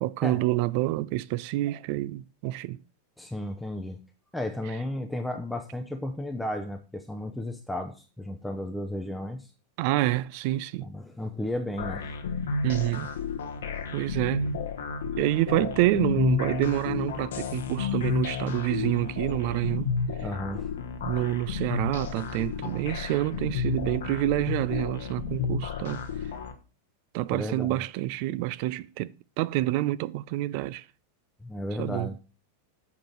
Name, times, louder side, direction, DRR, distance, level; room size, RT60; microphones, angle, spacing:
voice 1, 0.0-2.8 9.8-10.9 12.6-13.1 13.9-14.5 15.2-19.9 21.0-26.0 27.1-30.8 31.8-32.1, right 17 dB, 45° right, 0.4 m, -28 dB
voice 2, 3.2-4.0 4.3-9.5 10.8-12.1 20.2-20.7 27.3-27.8 31.4-32.2, left 1 dB, 5° left, 0.7 m, -34 dB
sound 1, 11.8-26.5, left 6 dB, 60° left, 1.0 m, -31 dB
7.1 x 5.1 x 6.1 m
figure-of-eight pair, 90°, 0 cm